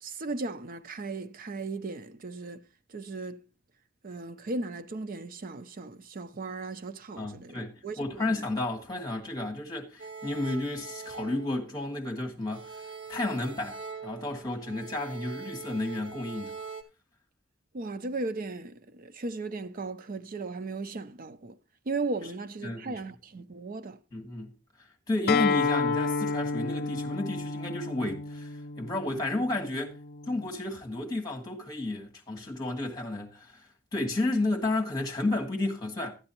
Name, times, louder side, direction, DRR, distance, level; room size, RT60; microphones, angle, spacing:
voice 1, 0.0-2.6 2.9-3.4 4.0-8.5 17.7-21.6 21.9-24.0, right 3 dB, 45° right, 0.5 m, -36 dB
voice 2, 7.2-12.7 13.1-16.6 22.6-23.0 24.1-24.5 25.1-28.5 28.8-29.9 30.3-33.6 33.9-36.2, left 2 dB, 20° left, 1.9 m, -32 dB
sound 1, 10.0-12.1 12.5-16.8, right 5 dB, 70° right, 1.2 m, -43 dB
Acoustic guitar, 25.3-30.5, left 4 dB, 55° left, 0.5 m, -31 dB
12.5 x 8.7 x 2.9 m
head